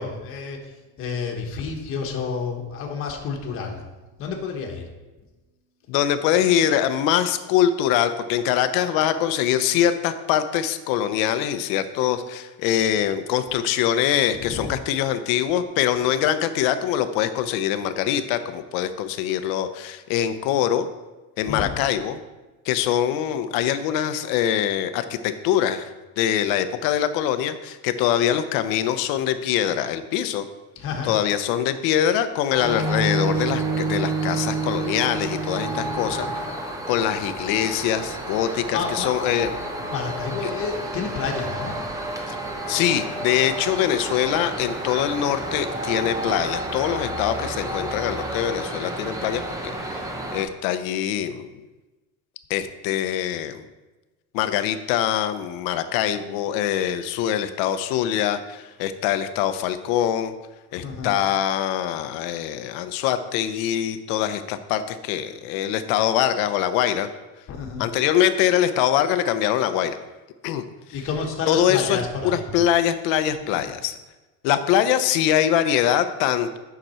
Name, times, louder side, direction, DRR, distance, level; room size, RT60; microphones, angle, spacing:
voice 1, 0.0-3.8 4.2-4.9 14.4-14.7 21.4-21.7 30.7-31.2 35.6-36.3 38.5-39.2 39.9-41.8 60.7-61.2 67.5-67.8 70.9-72.5 73.5-73.7, left 5 dB, 35° left, 1 dB, 1.3 m, -30 dB
voice 2, 5.9-20.9 21.4-22.2 22.7-25.9 26.2-30.4 31.0-36.4 36.9-39.5 42.3-42.4 42.7-51.6 52.5-53.6 54.3-60.3 60.7-67.1 67.8-69.9 70.4-70.6 71.5-73.9 74.4-76.6, left 10 dB, 70° left, 11 dB, 0.7 m, -23 dB
sound 1, 32.5-50.4, right 1 dB, 10° right, 0.6 m, -32 dB
sound 2, 32.6-36.4, right 3 dB, 60° right, 2.1 m, -27 dB
9.3 x 6.0 x 4.3 m, 1.1 s
cardioid pair, 160°, 37 cm